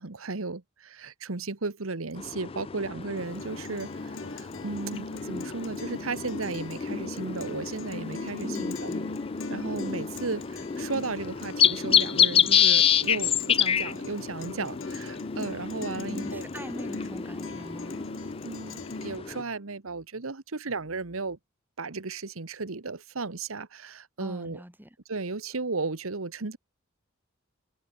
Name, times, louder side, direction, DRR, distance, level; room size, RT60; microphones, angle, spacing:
voice 1, 0.0-3.9 4.4-8.9 9.5-16.5 18.4-21.4 21.8-24.6 25.1-26.6, right 3 dB, 85° right, 1.3 m, -35 dB
sound 1, 2.2-19.4, left 8 dB, 25° left, 0.4 m, -28 dB
Guitar, 3.2-19.2, left 2 dB, 65° left, 1.5 m, -42 dB
voice 2, 8.4-9.1 16.1-18.0 24.2-25.0, equal, 10° right, 2.8 m, -41 dB
head